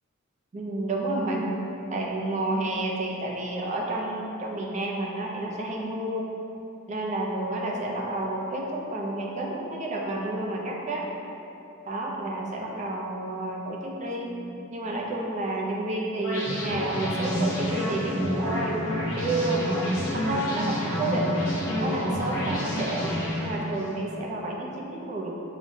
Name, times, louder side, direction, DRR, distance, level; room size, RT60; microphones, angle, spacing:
voice 1, 0.5-1.6 1.9-6.3 6.9-11.1 11.9-18.8 19.1-21.4 21.8-25.3, right 2 dB, 35° right, -1 dB, 0.3 m, -30 dB
sound 1, 16.2-23.9, equal, 75° left, 0.9 m, -28 dB
4.8 x 2.0 x 2.6 m, 2.9 s
head